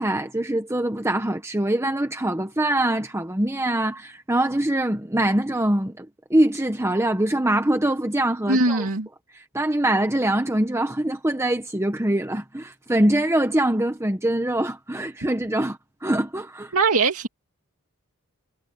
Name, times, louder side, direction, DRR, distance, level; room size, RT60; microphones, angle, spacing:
voice 1, 0.0-8.9 9.3-16.7, right 1 dB, 15° right, 1.1 m, -23 dB
voice 2, 8.5-9.1 16.7-17.3, right 3 dB, 90° right, 2.4 m, -21 dB
head